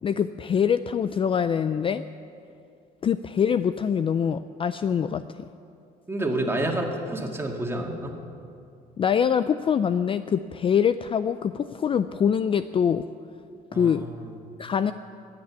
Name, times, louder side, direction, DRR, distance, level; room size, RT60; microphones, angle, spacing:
voice 1, 0.0-2.0 3.0-5.5 9.0-13.0 13.7-14.0 14.6-14.9, left 7 dB, 30° left, 12 dB, 0.4 m, -24 dB
voice 2, 6.1-8.2 13.7-14.3, right 1 dB, 15° right, 1 dB, 2.1 m, -29 dB
15.0 x 8.8 x 9.4 m, 2.5 s
cardioid pair, 110°, 17 cm